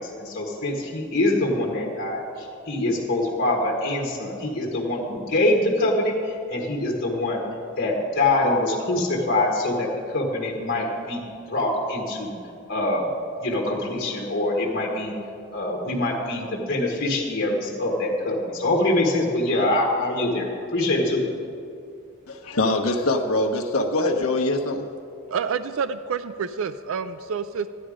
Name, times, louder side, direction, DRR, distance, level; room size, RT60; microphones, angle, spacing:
voice 1, 0.0-6.1 6.5-7.4 7.8-9.9 10.1-11.2 11.5-12.3 12.7-13.1 13.4-15.1 15.5-21.2, left 2 dB, 45° left, -2 dB, 1.6 m, -24 dB
voice 2, 22.3-24.9, left 2 dB, 90° left, 1 dB, 1.0 m, -23 dB
voice 3, 25.3-27.7, right 6 dB, 65° right, 11 dB, 0.4 m, -28 dB
13.5 x 10.5 x 5.0 m, 2.5 s
head